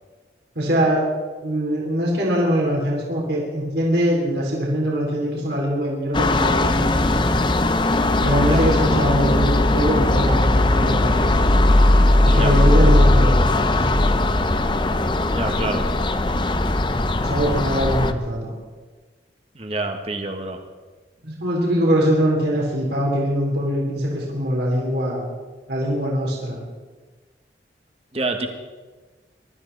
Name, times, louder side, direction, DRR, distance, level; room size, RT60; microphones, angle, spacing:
voice 1, 0.6-1.0 1.4-7.4 8.2-11.4 12.2-14.1 17.2-18.5 21.2-25.2 25.7-26.6, equal, 60° right, -3 dB, 3.8 m, -22 dB
sound 1, 6.1-18.1, left 1 dB, 25° left, 0.7 m, -18 dB
voice 2, 12.2-12.6 15.3-15.9 19.6-20.6 28.1-28.5, right 2 dB, 35° right, 5 dB, 1.6 m, -27 dB
23.5 x 13.5 x 4.1 m, 1.3 s
head